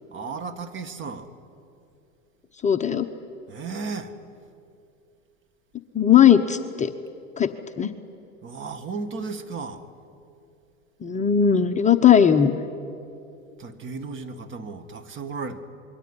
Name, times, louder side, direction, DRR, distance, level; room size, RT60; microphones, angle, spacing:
voice 1, 0.1-1.3 3.5-4.2 8.4-9.8 13.6-15.6, right 4 dB, 30° right, 1.9 m, -34 dB
voice 2, 2.6-3.1 5.9-6.9 7.4-7.5 7.8-7.9 11.0-12.5, left 8 dB, 15° left, 1.0 m, -18 dB
27.0 x 22.5 x 9.9 m
hypercardioid pair, 110°, 40 cm